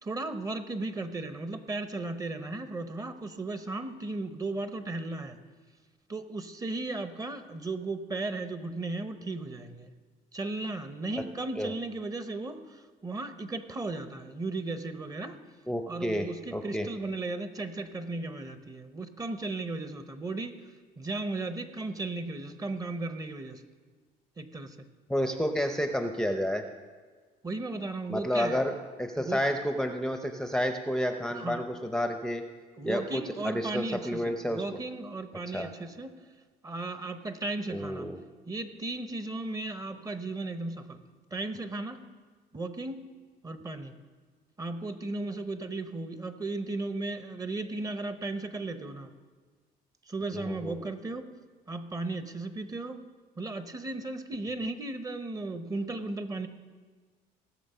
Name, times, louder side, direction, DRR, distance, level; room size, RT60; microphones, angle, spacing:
voice 1, 0.0-5.4 6.1-9.9 10.3-15.4 15.9-20.5 21.0-23.6 24.4-24.8 27.4-28.6 29.2-29.4 31.3-31.6 32.8-36.1 36.6-38.1 38.5-41.0 41.3-42.0 42.5-43.0 43.4-43.9 44.6-49.1 50.1-51.2 51.7-53.0 53.4-56.5, right 2 dB, 20° right, 9 dB, 0.9 m, -35 dB
voice 2, 15.7-16.9 25.1-26.6 28.1-32.4 32.8-34.6 35.5-35.7 37.7-38.2 50.3-50.9, equal, 5° left, 6 dB, 0.7 m, -30 dB
17.5 x 6.7 x 5.5 m, 1.5 s
cardioid pair, 110°, 17 cm